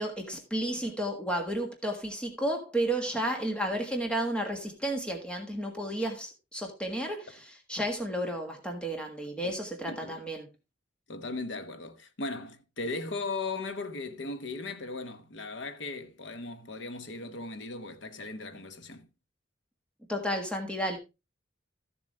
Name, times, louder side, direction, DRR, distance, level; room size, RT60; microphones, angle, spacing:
voice 1, 0.0-10.5 20.1-21.0, right 1 dB, 5° left, 1.5 m, -32 dB
voice 2, 9.9-10.2 11.1-19.1, left 3 dB, 65° left, 1.0 m, -37 dB
14.0 x 7.0 x 3.3 m
head